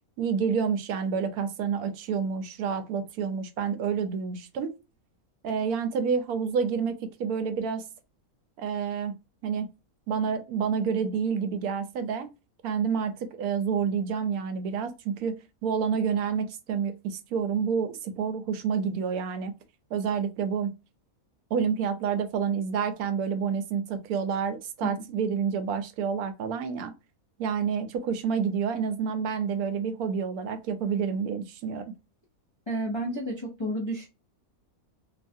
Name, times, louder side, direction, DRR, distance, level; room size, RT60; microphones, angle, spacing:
voice 1, 0.2-4.7 5.4-7.9 8.6-9.1 9.4-9.7 10.1-12.3 12.6-19.5 19.9-20.7 21.5-26.9 27.4-31.9, right 6 dB, 80° right, 1.1 m, -29 dB
voice 2, 32.7-34.1, right 1 dB, 45° left, 0.3 m, -31 dB
3.0 x 2.3 x 2.6 m
omnidirectional pair, 1.6 m